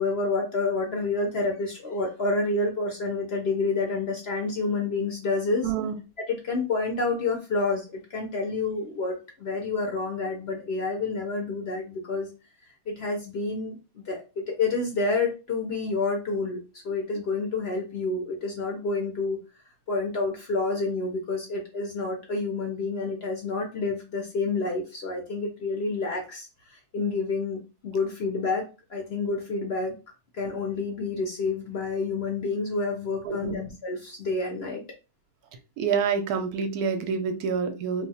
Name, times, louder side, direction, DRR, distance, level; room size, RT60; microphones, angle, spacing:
voice 1, 0.0-5.7 6.2-12.3 12.9-19.4 19.9-29.9 30.3-34.8, left 3 dB, 55° left, 1 dB, 0.7 m, -29 dB
voice 2, 5.6-5.9 33.2-33.6 35.8-38.1, right 6 dB, 75° right, 7 dB, 1.1 m, -27 dB
2.6 x 2.3 x 4.1 m, 0.31 s
omnidirectional pair, 1.6 m